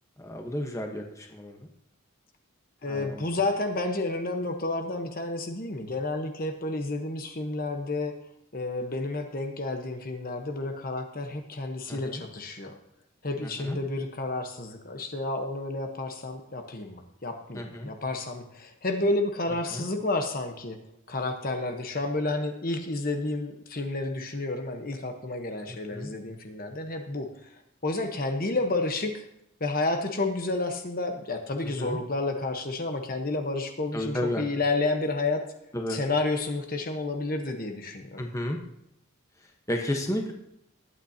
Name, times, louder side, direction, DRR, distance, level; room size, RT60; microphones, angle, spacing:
voice 1, 0.2-1.6 2.8-3.2 11.9-12.2 13.6-13.8 17.5-17.9 19.7-19.8 25.9-26.1 31.8-32.0 33.9-34.4 35.7-36.0 38.2-38.6 39.7-40.3, left 1 dB, 15° left, 2 dB, 1.1 m, -32 dB
voice 2, 2.8-8.1 8.5-12.7 13.2-20.8 21.1-27.3 27.8-29.3 29.6-35.4 35.9-38.2, left 2 dB, 40° left, 5 dB, 1.1 m, -30 dB
20.0 x 9.2 x 2.8 m, 0.78 s
head